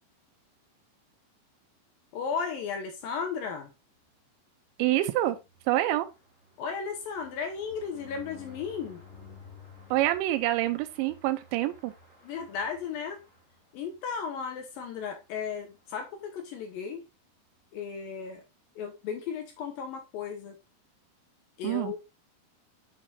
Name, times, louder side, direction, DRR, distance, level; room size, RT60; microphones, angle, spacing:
voice 1, 2.1-3.7 6.6-9.0 12.2-13.2 13.7-17.0 17.7-18.4 18.8-20.5 21.6-22.0, left 6 dB, 75° left, 2.1 m, -35 dB
voice 2, 4.8-5.4 5.7-6.1 9.9-11.9 21.6-22.0, right 15 dB, 85° right, 2.9 m, -26 dB
sound 1, 5.1-13.9 14.4-14.5 14.8-14.9 15.1-15.4, left 4 dB, 20° left, 2.2 m, -53 dB
7.5 x 6.1 x 2.7 m
omnidirectional pair, 5.2 m